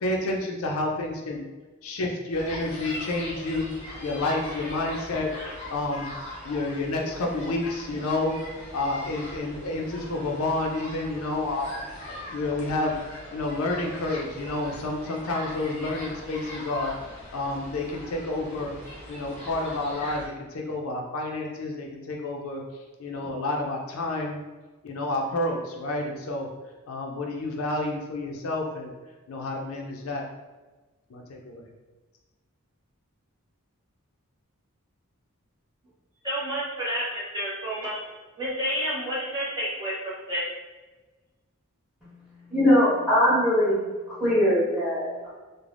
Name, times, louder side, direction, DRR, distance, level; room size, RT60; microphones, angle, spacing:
voice 1, 0.0-1.4 1.8-3.7 4.0-6.1 6.4-8.4 8.7-11.7 12.3-12.9 13.3-16.9 17.3-18.7 19.1-22.6 23.0-24.4 24.8-26.5 26.9-28.9 29.3-30.2 31.1-31.7, left 2 dB, 75° left, 1 dB, 0.4 m, -29 dB
sound 1, 2.3-20.3, left 1 dB, 35° left, 0.7 m, -40 dB
voice 2, 36.2-38.0 38.4-40.4, equal, 20° right, -8 dB, 0.6 m, -30 dB
voice 3, 42.5-43.8 44.2-45.3, equal, 5° right, -10 dB, 1.2 m, -21 dB
3.2 x 2.0 x 2.4 m, 1.2 s
head